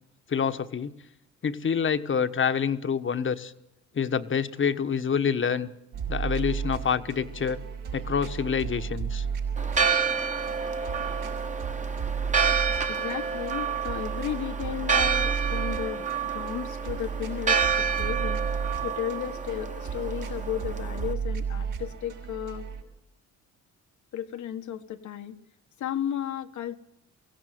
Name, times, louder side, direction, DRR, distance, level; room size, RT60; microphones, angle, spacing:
voice 1, 0.3-0.9 1.4-3.5 3.9-5.7 6.1-7.6 7.9-9.2, left 7 dB, 40° left, 10 dB, 1.4 m, -27 dB
sound 1, 5.9-22.8, right 6 dB, 90° right, 5.8 m, -33 dB
Church bell, 9.6-21.1, right 6 dB, 25° right, 1.4 m, -29 dB
voice 2, 12.9-18.4 18.8-22.6 24.1-25.4 25.8-26.8, left 11 dB, 75° left, 8 dB, 1.6 m, -34 dB
23.5 x 16.0 x 9.3 m, 0.85 s
cardioid pair, 90°, 30 cm